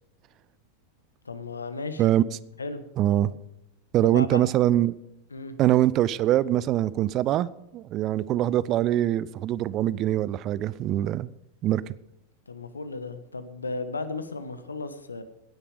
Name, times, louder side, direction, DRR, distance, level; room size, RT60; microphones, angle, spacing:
voice 1, 1.2-2.0 2.6-2.8 4.0-4.5 5.3-5.6 12.5-15.2, left 3 dB, 75° left, 10 dB, 1.2 m, -35 dB
voice 2, 3.0-3.3 3.9-4.9 5.6-11.3 11.6-11.8, right 13 dB, 35° right, 20 dB, 0.5 m, -23 dB
17.5 x 10.0 x 5.1 m, 0.87 s
figure-of-eight pair, 90°, 0 cm